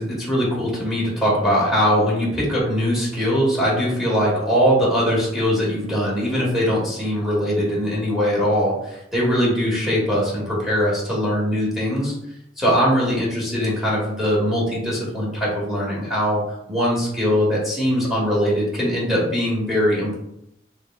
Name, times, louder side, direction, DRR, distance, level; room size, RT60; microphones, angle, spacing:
voice 1, 0.0-12.1 12.6-16.4 16.7-20.2, equal, ahead, -7 dB, 1.3 m, -21 dB
4.8 x 3.4 x 2.3 m, 0.78 s
head